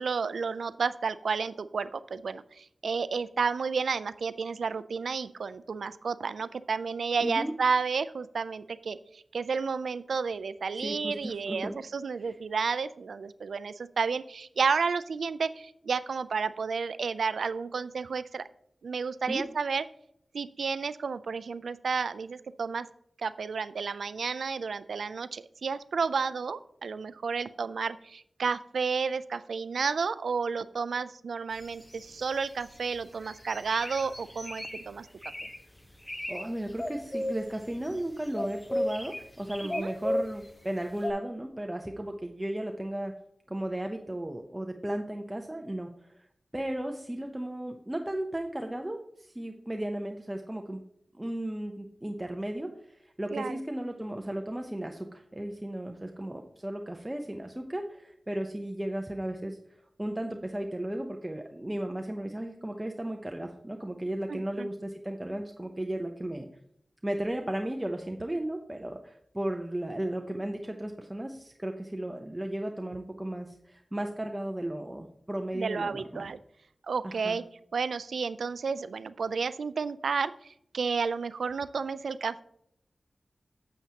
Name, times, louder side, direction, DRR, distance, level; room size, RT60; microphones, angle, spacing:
voice 1, 0.0-18.4 18.8-19.8 20.3-22.9 23.2-35.1 39.7-39.9 53.3-53.6 64.3-64.7 75.5-76.4 76.9-77.4 77.7-82.4, right 5 dB, 90° right, 15 dB, 0.3 m, -31 dB
voice 2, 7.2-7.5 10.7-11.8 12.2-12.4 19.3-19.4 36.3-43.1 43.5-46.2 46.5-50.8 51.1-59.6 60.0-66.5 67.0-76.3 77.0-77.4, right 1 dB, 15° right, 3 dB, 0.6 m, -35 dB
sound 1, 31.6-32.8 33.2-34.8 35.2-35.6 35.9-36.4 36.7-38.0 38.3-40.4 41.0-41.1, left 1 dB, 15° left, 0.8 m, -34 dB
8.9 x 7.4 x 2.8 m, 0.73 s
wide cardioid pair, 75°, 0 cm